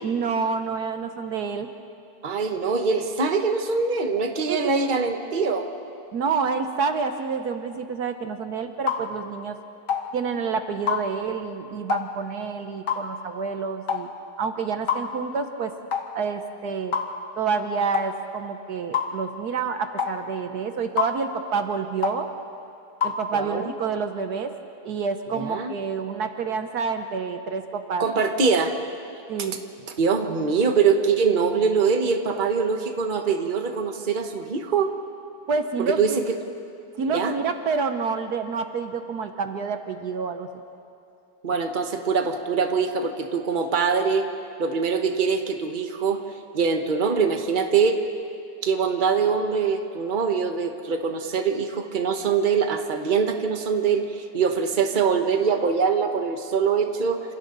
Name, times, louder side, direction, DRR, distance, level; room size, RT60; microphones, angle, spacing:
voice 1, 0.0-1.7 4.5-4.7 6.1-9.6 10.1-14.1 14.4-15.7 16.1-16.9 17.4-22.3 23.0-24.5 24.8-28.0 29.3-29.6 35.5-36.2 37.0-40.5, right 5 dB, 65° right, 7 dB, 1.4 m, -28 dB
voice 2, 2.2-5.7 23.3-23.7 25.3-25.7 28.0-28.7 30.0-34.9 35.8-36.3 37.1-37.3 41.4-44.3 44.6-46.2 46.5-48.0 48.6-57.2, right 5 dB, 30° right, 5 dB, 1.3 m, -23 dB
sound 1, 8.9-9.1 9.9-10.1 10.9-11.1 11.9-12.1 12.9-13.1 13.9-14.1 14.9-15.1 15.9-16.1 16.9-17.1 17.9-18.1 18.9-19.1 20.0-20.2 21.0-21.2 22.0-22.2 23.0-23.2, left 7 dB, 80° left, 2.1 m, -25 dB
29.0 x 27.0 x 4.0 m, 2.6 s
omnidirectional pair, 1.8 m